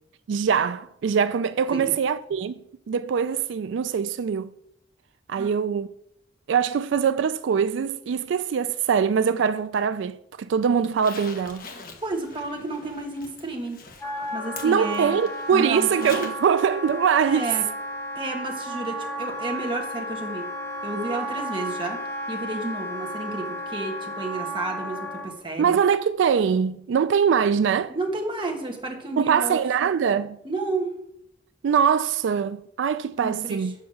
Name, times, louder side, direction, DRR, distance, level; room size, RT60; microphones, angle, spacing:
voice 1, 0.3-4.5 5.3-5.9 6.5-11.6 14.6-17.5 25.6-27.9 29.2-30.4 31.6-33.7, right 7 dB, 85° right, 0.3 m, -23 dB
Zipper (clothing), 10.8-16.5 16.8-16.9 18.8-18.9 19.3-19.4, left 4 dB, 50° left, 1.3 m, -42 dB
voice 2, 12.0-13.8 14.3-15.2 15.5-15.9 17.3-17.6 18.1-20.4 20.8-22.0 22.3-25.7 27.9-29.6 30.4-30.9 33.2-33.7, right 2 dB, 25° right, 1.5 m, -31 dB
Wind instrument woodwind instrument, 14.0-25.3, equal, 15° left, 1.2 m, -33 dB
7.3 x 5.7 x 6.5 m
head